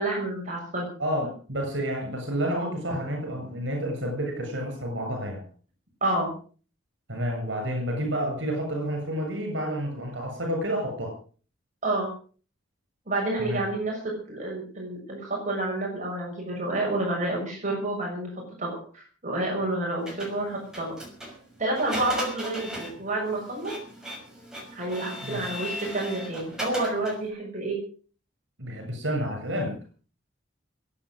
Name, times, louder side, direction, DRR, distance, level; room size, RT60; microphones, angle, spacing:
voice 1, 0.0-0.9 6.0-6.3 11.8-12.1 13.1-14.0 14.3-18.3 18.6-20.9 21.6-23.7 24.8-27.8, right 2 dB, 40° right, -1 dB, 6.5 m, -29 dB
voice 2, 1.0-5.4 7.1-11.1 13.4-13.6 25.2-25.4 28.6-29.7, equal, 70° right, 3 dB, 7.4 m, -30 dB
Printer, 20.1-27.3, equal, 5° right, 6.0 m, -38 dB
22.0 x 9.3 x 6.4 m, 0.41 s
head